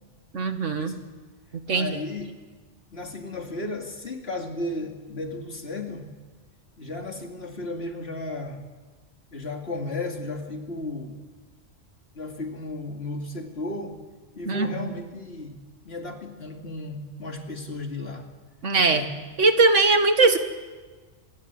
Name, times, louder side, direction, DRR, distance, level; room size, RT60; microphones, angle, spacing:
voice 1, 0.3-0.9 1.5-2.0 14.5-14.9 18.6-19.0 19.4-20.4, right 3 dB, 75° right, 8 dB, 1.9 m, -20 dB
voice 2, 1.7-2.4 2.9-6.1 6.8-8.6 9.3-11.2 12.1-14.0 14.4-15.6 15.8-18.3 18.9-19.1, left 2 dB, 55° left, 3 dB, 2.8 m, -34 dB
25.5 x 22.5 x 8.2 m, 1.4 s
omnidirectional pair, 1.3 m